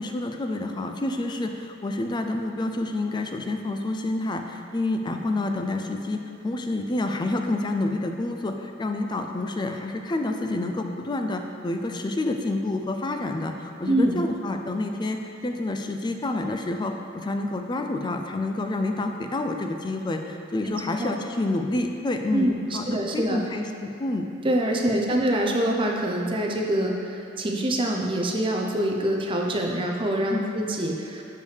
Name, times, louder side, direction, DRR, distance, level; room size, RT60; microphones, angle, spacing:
voice 1, 0.0-24.3 24.8-25.0 30.3-30.5, left 2 dB, 20° left, 4 dB, 0.3 m, -28 dB
voice 2, 13.8-14.2 20.6-21.1 22.3-23.4 24.4-31.2, right 1 dB, 25° right, 0 dB, 0.6 m, -25 dB
6.6 x 5.3 x 3.3 m, 2.6 s
head